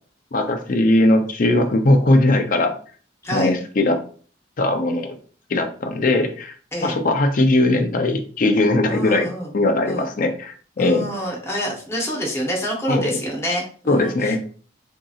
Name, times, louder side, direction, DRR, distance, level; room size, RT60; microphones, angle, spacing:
voice 1, 0.3-2.7 3.3-4.0 4.6-5.2 5.5-6.5 6.8-11.1 12.9-13.2 13.9-14.4, left 2 dB, 50° left, 6 dB, 0.5 m, -19 dB
voice 2, 8.9-9.5 9.8-10.1 10.8-14.4, equal, 15° left, -2 dB, 0.8 m, -27 dB
3.8 x 2.7 x 2.4 m, 0.43 s
head